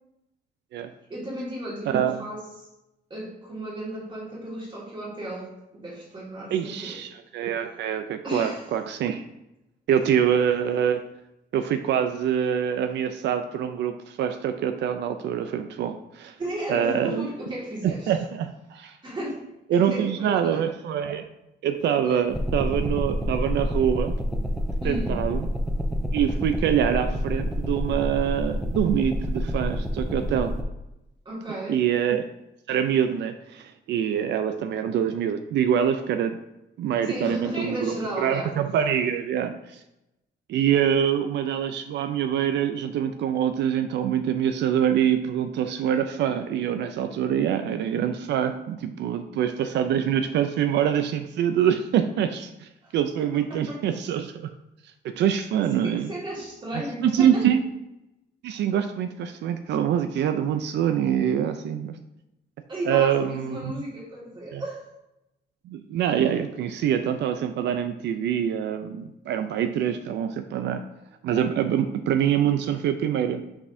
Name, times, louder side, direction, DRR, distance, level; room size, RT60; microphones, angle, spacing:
voice 1, 1.1-2.7 3.1-7.0 8.2-8.7 16.4-18.1 19.0-19.4 19.7-20.6 22.0-22.2 24.8-25.2 31.3-31.8 37.0-38.5 52.8-53.2 53.5-53.8 55.6-57.5 62.7-64.8, right 1 dB, 25° right, -4 dB, 1.9 m, -34 dB
voice 2, 1.9-2.2 6.5-9.2 9.9-11.0 11.5-16.4 16.7-17.3 17.8-19.0 19.7-21.3 21.6-24.1 24.8-25.5 26.1-30.5 31.7-32.3 32.7-36.4 36.8-39.8 40.5-54.5 55.0-56.1 56.7-57.6 58.4-61.9 62.9-63.7 64.5-64.6 65.7-70.8 71.2-73.4, right 9 dB, 85° right, 8 dB, 0.4 m, -25 dB
sound 1, 22.3-30.6, equal, ahead, 0.4 m, -28 dB
6.2 x 5.8 x 2.6 m, 0.90 s
wide cardioid pair, 175°, 18 cm